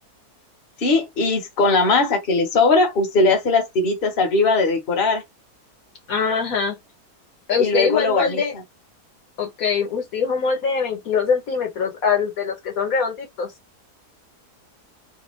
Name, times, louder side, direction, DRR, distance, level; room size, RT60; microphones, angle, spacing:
voice 1, 0.8-5.2 7.6-8.4, left 3 dB, 40° left, 1.1 m, -19 dB
voice 2, 6.1-6.8 7.5-8.5 9.4-13.5, left 5 dB, 60° left, 1.4 m, -23 dB
3.3 x 2.4 x 3.1 m
omnidirectional pair, 1.7 m